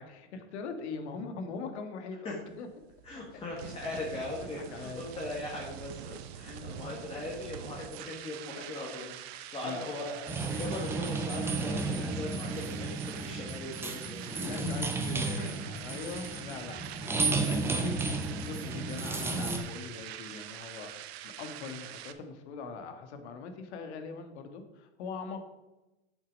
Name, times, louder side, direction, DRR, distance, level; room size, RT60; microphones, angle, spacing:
voice 1, 0.0-2.7 3.3-3.4 4.5-5.1 6.5-6.8 9.6-10.2 14.4-18.1 18.5-20.9 21.2-25.4, left 5 dB, 70° left, 7 dB, 1.7 m, -42 dB
sound 1, 2.5-22.1, right 11 dB, 60° right, 0.8 m, -45 dB
voice 2, 3.0-14.4 15.4-15.5, left 2 dB, 15° left, -2 dB, 1.6 m, -40 dB
sound 2, 10.3-19.6, right 3 dB, 5° right, 0.7 m, -33 dB
8.2 x 7.2 x 5.3 m, 1.0 s
supercardioid pair, 150°, 35 cm